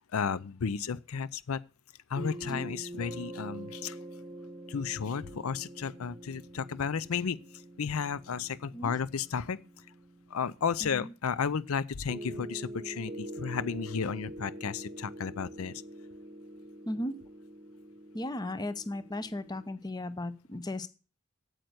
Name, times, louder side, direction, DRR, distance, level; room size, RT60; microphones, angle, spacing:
voice 1, 0.1-1.6 2.1-4.0 4.7-7.4 7.8-9.6 10.3-15.8, left 6 dB, 85° left, 0.5 m, -33 dB
sound 1, 2.2-10.9 12.1-19.7, right 1 dB, 25° right, 1.1 m, -45 dB
voice 2, 10.8-11.1 16.9-17.1 18.1-20.9, left 1 dB, 20° left, 0.7 m, -36 dB
8.7 x 8.0 x 7.9 m
head